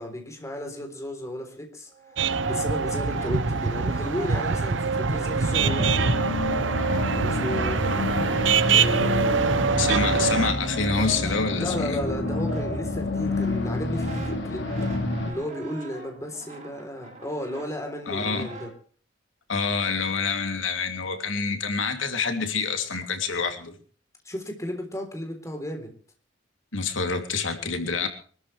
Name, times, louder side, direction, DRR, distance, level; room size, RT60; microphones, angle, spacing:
voice 1, 0.0-1.9 2.4-6.4 7.1-8.0 8.7-10.3 11.6-14.7 15.3-18.7 24.3-25.9, equal, 15° left, 3 dB, 3.6 m, -34 dB
Brass instrument, 1.9-6.3 6.6-18.7, right 2 dB, 40° right, 6.9 m, -43 dB
sound 1, 2.2-10.5, right 5 dB, 70° right, 0.9 m, -24 dB
sound 2, 5.5-15.3, left 2 dB, 65° left, 3.1 m, -29 dB
voice 2, 9.8-12.0 18.1-18.5 19.5-23.7 26.7-28.1, left 4 dB, 85° left, 5 dB, 2.9 m, -27 dB
25.0 x 13.5 x 3.3 m, 0.43 s
head